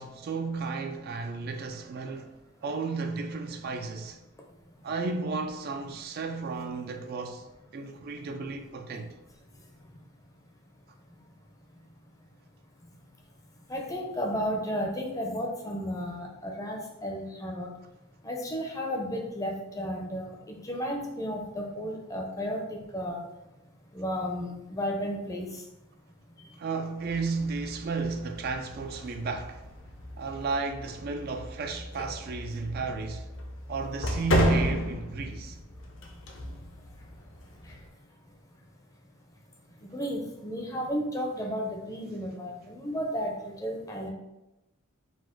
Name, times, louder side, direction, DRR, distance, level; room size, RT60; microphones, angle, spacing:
voice 1, 0.0-2.4 2.6-4.2 4.8-7.5 7.7-9.2 26.6-29.6 30.2-33.3 33.7-35.6, right 4 dB, 45° right, 0.3 m, -33 dB
voice 2, 13.7-17.7 18.2-23.2 23.9-25.5 39.9-44.1, equal, 15° left, 0.5 m, -33 dB
sound 1, 27.0-37.9, left 1 dB, 60° left, 0.7 m, -34 dB
4.1 x 2.4 x 4.4 m
head